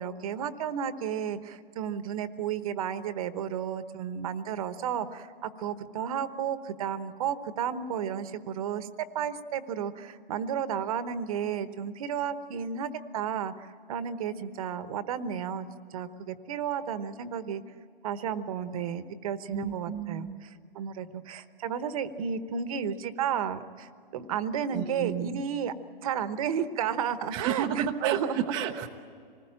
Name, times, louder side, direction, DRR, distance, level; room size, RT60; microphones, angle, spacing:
voice 1, 0.0-8.9 9.1-17.6 18.0-25.7 26.0-28.5, right 8 dB, 40° right, 12 dB, 1.1 m, -32 dB
voice 2, 19.5-20.4 24.7-25.4 27.3-28.9, right 10 dB, 15° right, 0 dB, 0.6 m, -32 dB
27.0 x 20.0 x 8.8 m, 2.3 s
hypercardioid pair, 155°, 29 cm